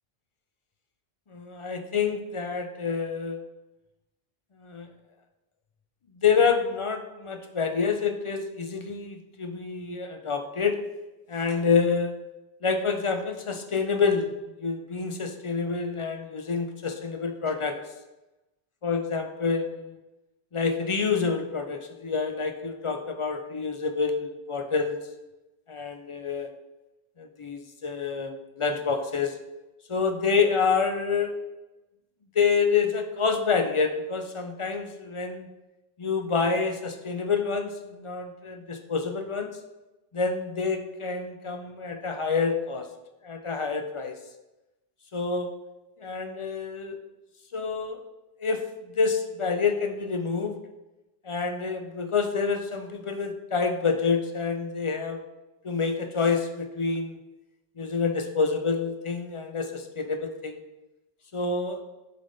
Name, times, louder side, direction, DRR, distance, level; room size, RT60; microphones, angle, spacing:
voice 1, 1.3-3.4 4.6-4.9 6.2-10.8 11.3-12.2 12.6-14.3 14.6-17.8 18.8-19.9 20.5-25.0 25.7-26.5 27.2-29.4 29.9-31.3 32.4-35.5 36.0-39.6 40.1-42.9 43.2-44.1 45.1-45.5 46.0-47.0 47.5-48.0 48.4-50.6 51.2-55.2 55.6-57.2 57.8-60.6 61.3-61.8, left 5 dB, 45° left, 6 dB, 0.4 m, -27 dB
7.4 x 3.4 x 3.9 m, 1.0 s
omnidirectional pair, 1.0 m